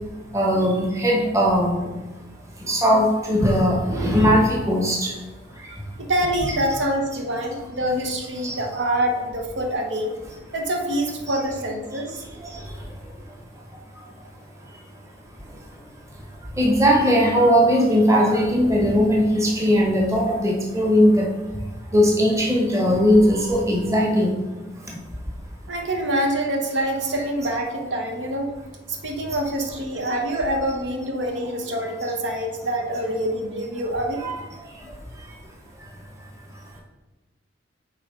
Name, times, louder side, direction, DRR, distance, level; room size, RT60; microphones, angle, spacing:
voice 1, 0.3-1.9 2.7-5.1 8.4-8.5 16.6-21.3 21.9-24.3 34.2-34.4, equal, 15° right, -2 dB, 1.1 m, -19 dB
voice 2, 6.0-10.1 10.5-12.2 25.7-28.5 28.9-34.2, right 1 dB, 70° right, 2 dB, 0.9 m, -25 dB
9.2 x 3.8 x 3.7 m, 1.1 s
head